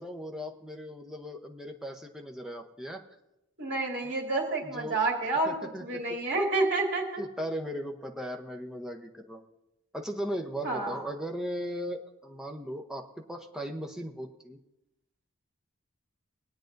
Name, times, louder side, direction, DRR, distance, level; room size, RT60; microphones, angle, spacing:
voice 1, 0.0-3.0 4.6-5.0 5.4-5.9 7.2-9.4 9.9-14.6, equal, 5° right, 2 dB, 0.8 m, -37 dB
voice 2, 3.6-7.2 10.6-11.0, right 2 dB, 60° right, -1 dB, 2.6 m, -29 dB
22.5 x 9.0 x 2.6 m, 0.89 s
head